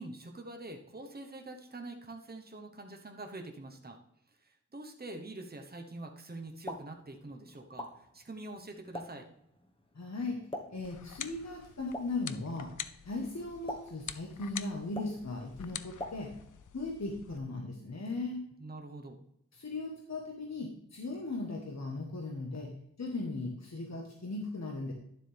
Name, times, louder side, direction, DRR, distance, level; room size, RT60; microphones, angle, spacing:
voice 1, 0.0-4.0 4.4-9.3 18.6-19.2, right 2 dB, 30° right, 3 dB, 1.1 m, -45 dB
Explosion, 6.4-16.7, left 1 dB, 20° left, 1.3 m, -48 dB
voice 2, 9.9-10.4 10.7-12.7 13.0-16.3 16.7-18.4 19.5-22.7 23.0-24.9, left 2 dB, 60° left, 1 dB, 1.4 m, -38 dB
sound 1, 10.8-17.4, left 8 dB, 90° left, 0.5 m, -46 dB
11.5 x 7.4 x 3.5 m, 0.74 s
wide cardioid pair, 70°, 30 cm